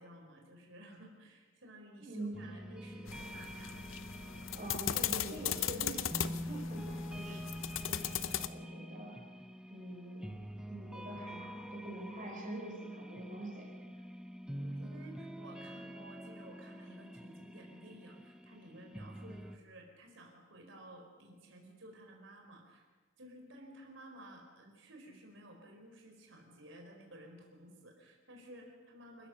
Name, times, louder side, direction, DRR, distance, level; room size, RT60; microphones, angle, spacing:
voice 1, 0.0-3.8 14.5-22.8 23.2-29.3, right 1 dB, 75° right, 2 dB, 4.8 m, -54 dB
voice 2, 2.0-2.4 4.5-7.5 7.8-9.2 9.7-10.3 10.6-13.7, right 1 dB, 45° right, -1 dB, 4.9 m, -45 dB
sound 1, 2.3-19.6, equal, 5° right, 0.8 m, -46 dB
sound 2, 3.1-8.5, left 10 dB, 85° left, 0.7 m, -38 dB
28.5 x 14.5 x 6.5 m, 1.4 s
head